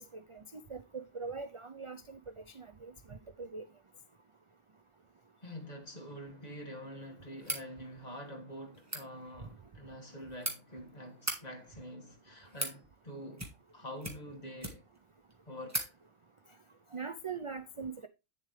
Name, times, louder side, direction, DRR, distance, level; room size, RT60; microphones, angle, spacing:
voice 1, 0.0-2.2 2.5-3.7 16.9-18.1, right 5 dB, 40° right, 0.4 m, -42 dB
voice 2, 5.4-14.8 15.5-15.9, equal, 35° left, 2.1 m, -46 dB
sound 1, 7.4-7.7 8.7-9.0 10.0-10.5 11.1-11.4 12.2-12.8 13.3-13.7 14.0-15.0 15.3-15.4 15.7-15.9, right 1 dB, 15° right, 1.6 m, -38 dB
8.9 x 7.1 x 3.2 m
omnidirectional pair, 1.3 m